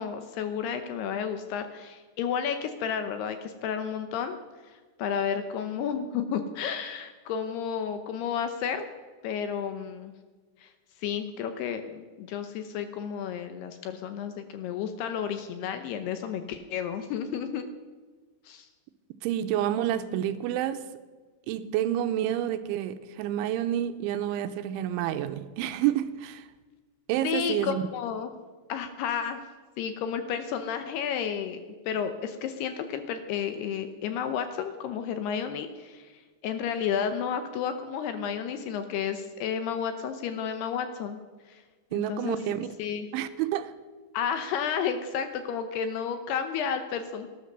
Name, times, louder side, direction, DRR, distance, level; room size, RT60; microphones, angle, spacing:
voice 1, 0.0-4.4 5.0-8.8 9.2-10.1 10.6-10.7 11.0-17.7 18.5-18.7 27.2-28.3 28.7-29.4 29.8-31.6 31.9-41.2 41.5-41.6 41.9-42.4 42.8-43.1 44.1-47.3, left 7 dB, 75° left, 2.5 m, -32 dB
voice 2, 19.2-20.8 21.5-26.5 27.1-27.8 41.9-42.7 43.1-43.7, right 11 dB, 85° right, 3.2 m, -29 dB
18.5 x 11.0 x 6.7 m
omnidirectional pair, 5.4 m